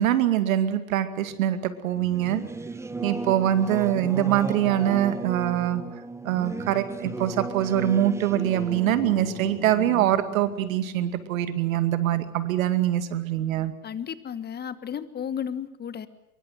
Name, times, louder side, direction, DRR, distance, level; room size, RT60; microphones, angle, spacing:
voice 1, 0.0-2.4 3.0-5.8 6.2-13.7, right 11 dB, 65° right, 10 dB, 2.4 m, -24 dB
Singing / Musical instrument, 2.0-12.1, right 3 dB, 5° right, 1.2 m, -36 dB
voice 2, 13.8-16.1, left 8 dB, 20° left, 14 dB, 1.5 m, -33 dB
24.5 x 23.0 x 7.9 m, 0.86 s
hypercardioid pair, 100°, 43 cm